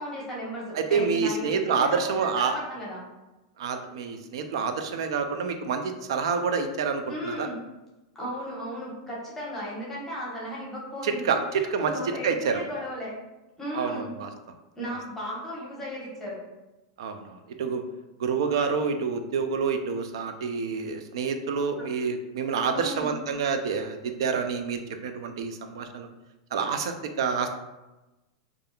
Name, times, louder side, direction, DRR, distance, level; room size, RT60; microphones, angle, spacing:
voice 1, 0.0-3.0 7.1-7.6 8.1-11.3 11.5-13.1 13.6-14.1 14.8-16.4 21.8-21.9 22.7-23.1, equal, 10° left, -6 dB, 0.9 m, -35 dB
voice 2, 0.8-2.6 3.6-5.8 6.1-7.5 11.0-11.9 12.2-12.6 13.7-14.3 17.0-17.8 18.2-26.1 26.5-27.5, right 5 dB, 75° right, 7 dB, 0.3 m, -28 dB
2.7 x 2.4 x 2.3 m, 1.0 s
hypercardioid pair, 125°, 3 cm